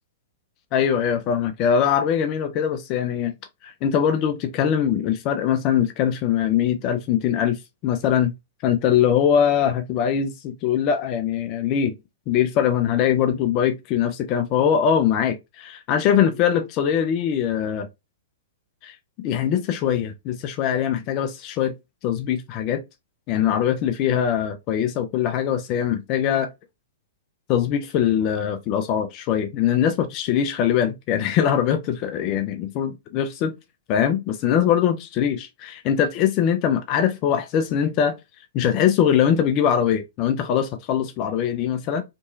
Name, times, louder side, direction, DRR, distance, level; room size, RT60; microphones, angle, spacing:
voice 1, 0.7-3.3 3.6-8.3 8.6-12.0 12.3-17.9 18.8-21.7 22.0-22.8 23.3-26.5 27.5-33.6 33.9-38.2 38.5-42.0, left 9 dB, 40° left, 0.3 m, -22 dB
2.9 x 2.6 x 2.3 m
figure-of-eight pair, 105°, 0 cm